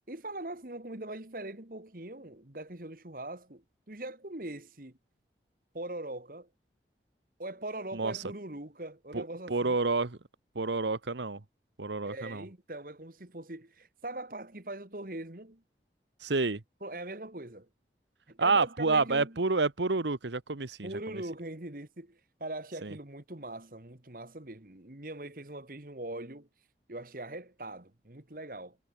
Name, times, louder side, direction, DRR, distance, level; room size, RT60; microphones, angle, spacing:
voice 1, 0.1-5.0 5.7-6.5 7.4-9.8 12.0-15.6 16.8-17.7 18.3-19.4 20.8-26.5 26.9-28.8, right 1 dB, 50° right, 2.1 m, -41 dB
voice 2, 9.1-10.2 10.5-11.4 11.8-12.4 16.2-16.6 18.4-21.2 22.8-22.9, right 3 dB, 85° right, 1.2 m, -29 dB
head